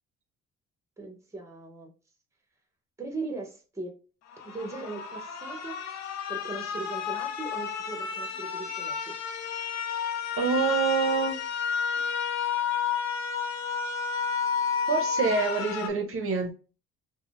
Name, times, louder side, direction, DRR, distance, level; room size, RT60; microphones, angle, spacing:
voice 1, 1.0-1.9 3.0-3.9 4.4-5.8 6.3-9.1, right 3 dB, 10° right, 0.8 m, -39 dB
sound 1, 4.3-15.9, left 7 dB, 60° left, 0.5 m, -31 dB
voice 2, 10.4-11.5 14.9-16.5, right 5 dB, 45° right, 0.6 m, -26 dB
3.5 x 2.1 x 2.4 m
cardioid pair, 90°, 30 cm